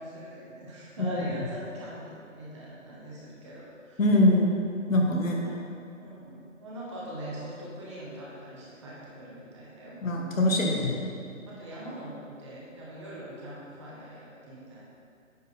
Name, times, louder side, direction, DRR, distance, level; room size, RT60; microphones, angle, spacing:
voice 1, 0.0-4.0 5.4-5.5 6.0-10.0 10.3-10.6 11.5-14.8, right 1 dB, 20° right, -6 dB, 1.1 m, -42 dB
voice 2, 4.0-4.6 4.9-5.4 10.0-11.1, left 1 dB, 70° left, 0 dB, 1.4 m, -23 dB
9.3 x 4.0 x 4.1 m, 2.5 s
hypercardioid pair, 155°, 41 cm